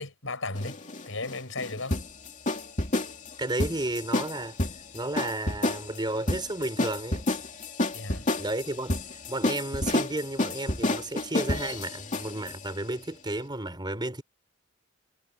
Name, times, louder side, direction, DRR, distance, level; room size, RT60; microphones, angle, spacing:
voice 1, 0.0-2.0 7.9-8.3, left 3 dB, 70° left, 6.7 m, -35 dB
sound 1, 0.5-12.6, left 2 dB, 40° left, 2.6 m, -30 dB
voice 2, 3.4-4.6 4.9-7.3 8.4-14.2, right 2 dB, 20° right, 3.7 m, -32 dB
head